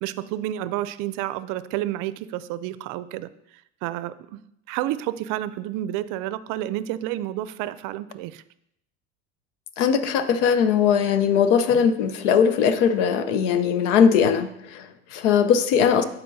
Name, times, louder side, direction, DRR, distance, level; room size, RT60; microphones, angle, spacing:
voice 1, 0.0-3.3 3.8-4.4 4.7-8.4, right 13 dB, 60° right, 15 dB, 0.5 m, -30 dB
voice 2, 9.8-16.0, left 7 dB, 75° left, 12 dB, 0.8 m, -20 dB
12.5 x 4.4 x 2.7 m, 0.77 s
supercardioid pair, 95°, 36 cm